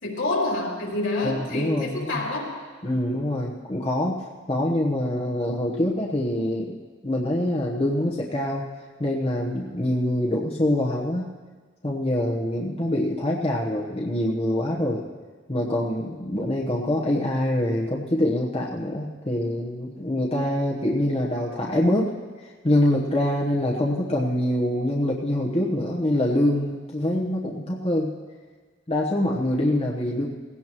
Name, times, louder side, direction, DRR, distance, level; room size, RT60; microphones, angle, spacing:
voice 1, 0.0-2.5, left 2 dB, 75° left, -3 dB, 3.2 m, -27 dB
voice 2, 1.2-2.2 2.8-4.2 4.5-6.7 7.0-8.6 9.0-11.3 11.8-15.0 15.5-22.1 22.6-28.2 28.9-30.3, left 1 dB, 30° left, -3 dB, 1.1 m, -25 dB
18.0 x 17.0 x 3.1 m, 1.4 s
head